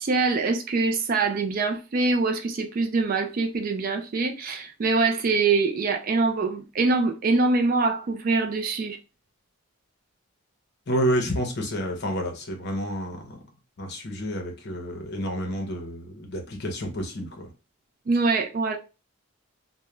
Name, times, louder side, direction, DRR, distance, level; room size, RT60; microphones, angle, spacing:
voice 1, 0.0-9.0 18.1-18.8, right 3 dB, 40° right, 0.3 m, -24 dB
voice 2, 10.9-13.4 13.8-17.5, equal, 50° left, 0.7 m, -29 dB
2.3 x 2.1 x 2.9 m
head